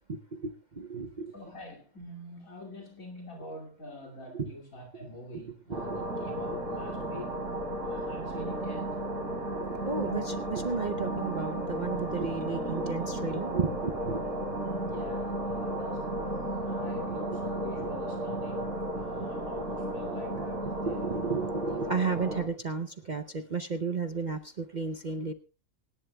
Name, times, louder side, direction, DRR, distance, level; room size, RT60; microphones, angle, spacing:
voice 1, 0.1-1.3 4.3-4.5 5.0-5.1 5.3-6.0 9.5-14.3 20.3-20.5 20.8-25.3, right 4 dB, 45° right, 0.7 m, -33 dB
voice 2, 1.3-7.4 7.8-8.9 14.6-21.1, left 1 dB, 75° left, 2.9 m, -45 dB
sound 1, 5.7-22.4, right 1 dB, 60° right, 3.5 m, -34 dB
25.0 x 11.0 x 2.3 m
omnidirectional pair, 1.5 m